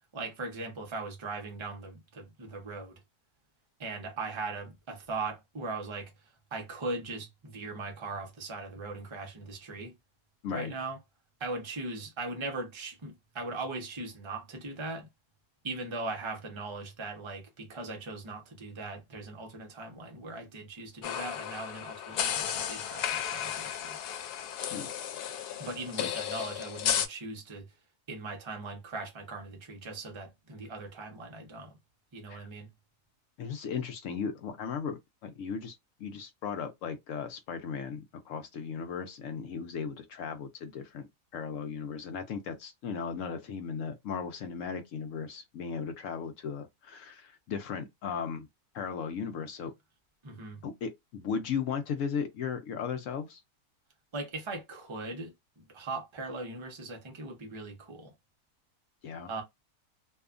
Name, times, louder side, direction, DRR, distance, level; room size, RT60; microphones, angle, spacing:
voice 1, 0.1-3.0 3.8-9.9 10.5-11.0 11.4-15.1 15.6-24.0 25.6-27.7 28.1-31.8 32.1-32.7 50.2-50.6 54.1-58.1 59.3-59.4, right 3 dB, 35° right, 0.5 m, -39 dB
sound 1, 21.0-27.1, left 9 dB, 85° left, 1.1 m, -34 dB
voice 2, 33.4-48.5 48.7-49.7 50.6-53.4 59.0-59.3, left 6 dB, 70° left, 0.8 m, -36 dB
2.7 x 2.3 x 2.4 m
omnidirectional pair, 1.6 m